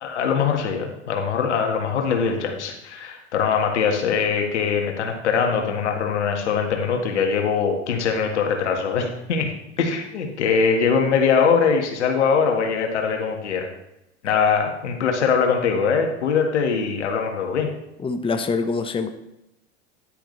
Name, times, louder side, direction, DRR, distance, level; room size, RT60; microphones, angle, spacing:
voice 1, 0.0-9.5 9.8-13.7 14.2-17.7, left 6 dB, 85° left, 3 dB, 1.9 m, -22 dB
voice 2, 18.0-19.1, left 4 dB, 15° left, 7 dB, 0.9 m, -24 dB
10.5 x 10.0 x 3.3 m, 0.86 s
hypercardioid pair, 85°, 34 cm